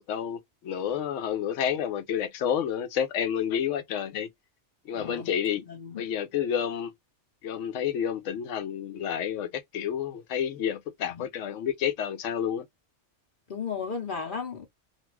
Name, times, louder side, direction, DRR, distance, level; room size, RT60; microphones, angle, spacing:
voice 1, 0.0-4.3 4.9-5.7 6.0-6.9 7.4-12.7, left 9 dB, 85° left, 0.9 m, -30 dB
voice 2, 4.9-5.3 5.6-6.0 11.0-11.3 13.5-14.7, left 5 dB, 50° left, 0.9 m, -35 dB
2.5 x 2.3 x 3.1 m
omnidirectional pair, 1.2 m